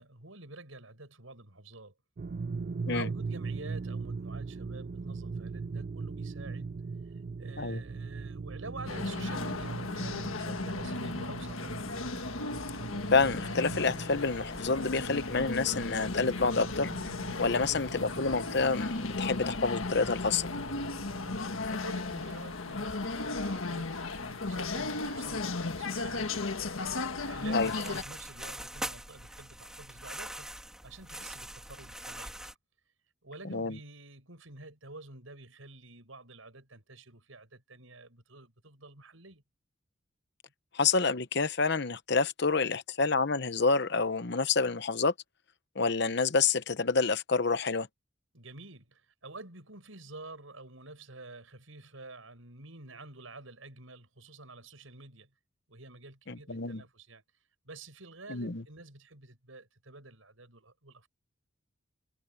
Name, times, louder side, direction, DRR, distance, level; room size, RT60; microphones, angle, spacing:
voice 1, 0.0-1.9 2.8-6.7 7.4-11.8 17.5-17.7 21.6-26.5 27.1-30.5 30.8-32.4 33.2-39.4 48.3-55.3 55.7-57.2 57.6-61.1, right 2 dB, 85° right, 6.4 m, -49 dB
sound 1, 2.2-21.6, right 4 dB, 45° right, 0.3 m, -40 dB
sound 2, 8.9-28.0, left 3 dB, 90° left, 1.6 m, -35 dB
voice 2, 13.1-16.9 17.4-20.5 27.5-27.7 33.4-33.8 40.7-45.1 45.7-47.9 56.3-56.8 58.3-58.6, left 4 dB, 55° left, 1.0 m, -28 dB
sound 3, 14.0-32.5, right 1 dB, 5° right, 2.8 m, -47 dB
head